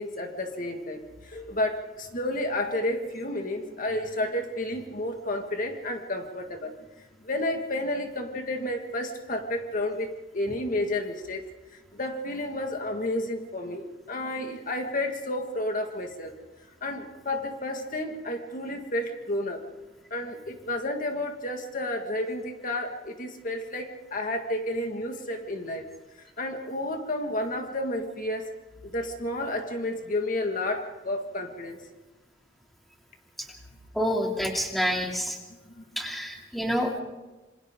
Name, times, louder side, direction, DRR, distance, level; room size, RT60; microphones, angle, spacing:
voice 1, 0.0-6.7 7.2-11.4 11.7-16.3 16.8-19.6 20.1-25.9 26.2-28.5 28.8-31.8 35.8-35.9, left 1 dB, 45° left, 4 dB, 1.9 m, -31 dB
voice 2, 33.9-35.4 36.0-37.0, equal, ahead, 0 dB, 2.7 m, -28 dB
27.0 x 26.5 x 3.8 m, 1.1 s
head